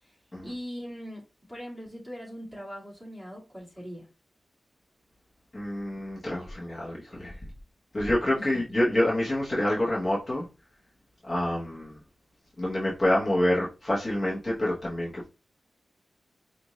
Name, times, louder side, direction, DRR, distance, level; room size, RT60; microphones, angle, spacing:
voice 1, 0.4-4.1 8.3-8.6, equal, ahead, 2.2 m, -41 dB
voice 2, 5.5-7.4 7.9-10.4 11.2-12.0 12.6-15.3, left 1 dB, 30° left, 1.1 m, -27 dB
5.1 x 2.6 x 3.0 m
wide cardioid pair, 115°, 0 cm